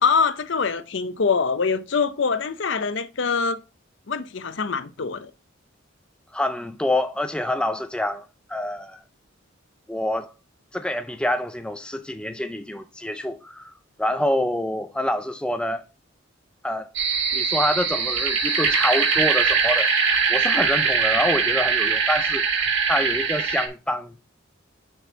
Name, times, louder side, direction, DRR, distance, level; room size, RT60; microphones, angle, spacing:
voice 1, 0.0-3.6 4.1-5.3, left 5 dB, 60° left, 0.6 m, -24 dB
voice 2, 6.3-9.0 9.9-10.3 10.7-13.7 14.0-15.8 16.6-16.9 17.3-19.9 20.3-22.5 22.9-24.1, left 1 dB, 5° left, 0.4 m, -26 dB
sound 1, 16.9-23.7, right 5 dB, 65° right, 1.7 m, -22 dB
6.6 x 4.4 x 5.6 m
head